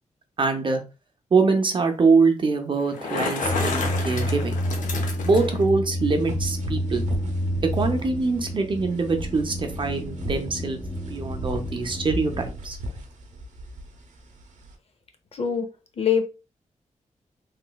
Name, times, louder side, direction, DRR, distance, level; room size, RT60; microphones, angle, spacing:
voice 1, 0.4-0.8 1.3-4.6 5.2-7.0 7.7-10.8 11.1-12.8, right 4 dB, 40° right, 0.6 m, -23 dB
Bicycle, 2.8-5.6, left 4 dB, 85° left, 0.7 m, -30 dB
sound 1, 3.4-12.5, equal, 10° left, 0.7 m, -29 dB
sound 2, 6.0-14.8, right 1 dB, 75° right, 0.7 m, -37 dB
voice 2, 15.3-15.7 16.0-16.2, left 7 dB, 50° left, 0.6 m, -23 dB
3.2 x 3.0 x 2.2 m
wide cardioid pair, 125°, 13 cm